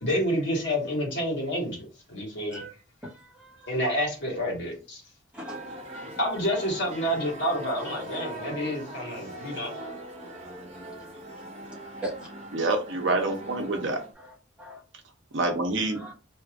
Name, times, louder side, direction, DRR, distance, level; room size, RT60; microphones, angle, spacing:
voice 1, 0.0-2.6 3.7-5.0 6.2-9.7, equal, 60° left, -2 dB, 1.5 m, -29 dB
voice 2, 3.0-3.7 5.3-6.3 12.0-12.3 14.2-14.8 15.9-16.1, right 1 dB, 5° right, -3 dB, 1.0 m, -40 dB
sound 1, 5.4-14.1, right 1 dB, 30° right, 0.7 m, -41 dB
voice 3, 12.5-14.0 15.3-16.1, right 2 dB, 65° right, 4 dB, 0.7 m, -27 dB
2.9 x 2.4 x 3.5 m, 0.33 s
head